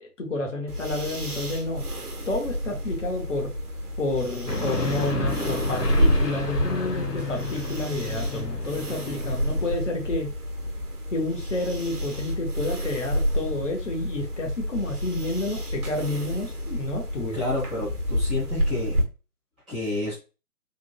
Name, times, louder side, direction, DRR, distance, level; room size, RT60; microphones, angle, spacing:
voice 1, 0.0-1.8 2.3-3.5 4.0-10.3 11.1-17.4, left 2 dB, 50° left, 1 dB, 0.9 m, -30 dB
sound 1, 0.7-19.0, equal, 70° right, 1.0 m, -29 dB
sound 2, 4.5-9.7, left 2 dB, 90° left, 1.0 m, -32 dB
sound 3, 5.2-7.2, left 3 dB, 40° right, 0.4 m, -39 dB
voice 2, 17.3-18.9 19.7-20.1, left 2 dB, 5° right, -16 dB, 0.8 m, -29 dB
3.6 x 2.5 x 2.2 m, 0.32 s
figure-of-eight pair, 145°, 47 cm